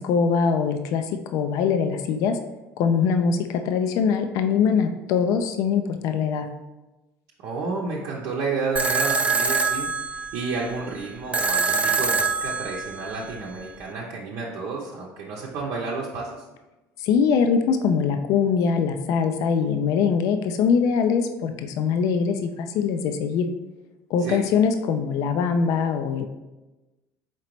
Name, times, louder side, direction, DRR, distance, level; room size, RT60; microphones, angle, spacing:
voice 1, 0.0-2.4 2.8-3.4 3.6-6.5 17.0-23.5 24.1-26.3, left 6 dB, 70° left, 6 dB, 0.4 m, -22 dB
voice 2, 7.4-16.4 24.2-24.4, right 4 dB, 70° right, -4 dB, 0.7 m, -31 dB
sound 1, 8.8-13.8, right 4 dB, 20° right, 0.4 m, -25 dB
4.4 x 3.9 x 3.0 m, 1.1 s
supercardioid pair, 90°, 6 cm